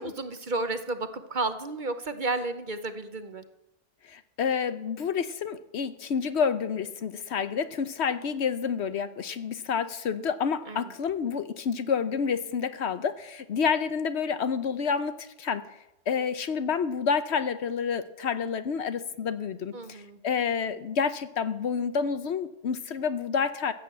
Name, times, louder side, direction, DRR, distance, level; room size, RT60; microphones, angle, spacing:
voice 1, 0.0-3.4 10.7-10.8 19.7-20.2, right 2 dB, 45° right, 10 dB, 0.9 m, -32 dB
voice 2, 4.0-15.6 16.1-23.7, left 6 dB, 65° left, 12 dB, 1.0 m, -29 dB
15.0 x 8.3 x 7.6 m, 0.92 s
omnidirectional pair, 1.3 m